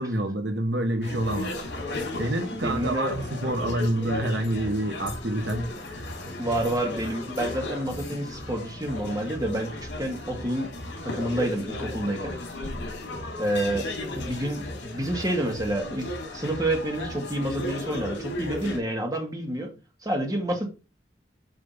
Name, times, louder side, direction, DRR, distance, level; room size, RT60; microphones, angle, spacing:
voice 1, 0.0-1.5 2.2-6.1, right 1 dB, 75° right, 1.1 m, -27 dB
sound 1, 1.0-18.8, left 2 dB, 90° left, 2.6 m, -35 dB
voice 2, 2.5-3.1 6.4-10.7 11.0-12.3 13.4-13.9 14.1-19.7 20.0-20.7, right 1 dB, 20° right, 1.8 m, -29 dB
7.2 x 3.4 x 5.4 m
head